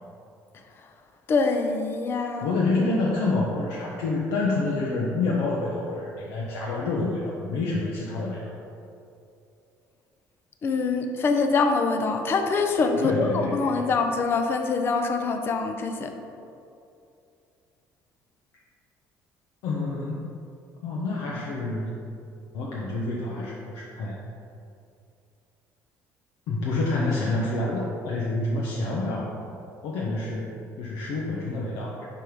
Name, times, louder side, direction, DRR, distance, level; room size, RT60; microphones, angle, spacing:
voice 1, 1.3-2.6 10.6-16.1, left 4 dB, 35° left, 6 dB, 0.6 m, -24 dB
voice 2, 2.4-8.5 13.0-13.9 19.6-20.3 20.8-21.9 22.5-24.2 26.5-29.4 29.8-32.1, left 2 dB, 80° left, -4 dB, 0.8 m, -28 dB
5.4 x 4.5 x 4.9 m, 2.6 s
cardioid pair, 130°, 6 cm